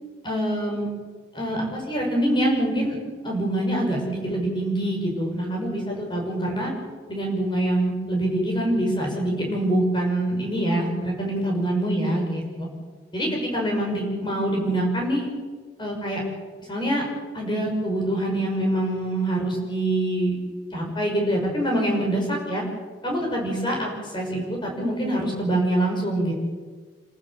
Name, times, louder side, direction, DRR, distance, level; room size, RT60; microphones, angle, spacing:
voice 1, 0.2-0.9 1.3-3.0 3.2-6.7 7.1-12.7 13.1-15.3 15.8-16.2 16.7-17.0 17.3-20.3 20.7-22.6 23.0-26.3, right 1 dB, 25° left, 0 dB, 5.9 m, -25 dB
27.5 x 14.5 x 7.6 m, 1.4 s
head